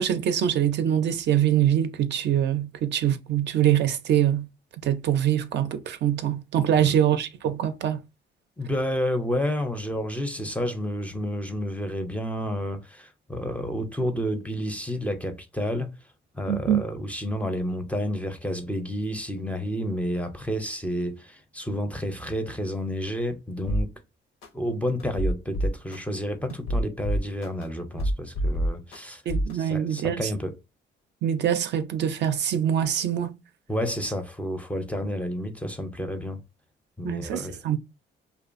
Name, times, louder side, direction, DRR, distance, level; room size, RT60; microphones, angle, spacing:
voice 1, 0.0-4.5 4.8-8.0 16.5-16.8 29.3-30.3 31.2-33.4 37.0-37.8, right 10 dB, 60° right, 0.4 m, -24 dB
voice 2, 8.6-15.9 16.3-23.9 24.5-29.2 29.5-30.6 33.7-36.4 37.0-37.6, equal, 5° left, 0.4 m, -30 dB
sound 1, 23.7-23.8 24.4-24.5 25.0-26.0 26.5-27.6 28.0-29.0 29.3-29.5, equal, 90° left, 0.7 m, -25 dB
2.5 x 2.2 x 2.4 m
cardioid pair, 90°, 20 cm